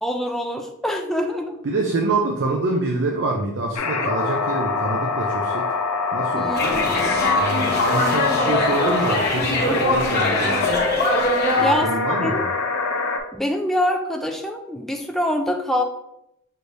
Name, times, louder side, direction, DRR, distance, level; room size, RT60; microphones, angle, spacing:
voice 1, 0.0-1.6 6.3-6.9 9.7-10.0 11.6-12.5 13.3-15.8, left 1 dB, ahead, 2 dB, 0.3 m, -25 dB
voice 2, 1.6-5.7 6.1-6.9 7.3-10.9 11.5-12.4, right 2 dB, 55° right, 1 dB, 0.5 m, -26 dB
sound 1, 3.7-13.2, left 4 dB, 90° left, 0.7 m, -25 dB
sound 2, 6.5-11.7, left 2 dB, 45° left, 1.0 m, -22 dB
6.4 x 3.2 x 2.6 m, 0.82 s
head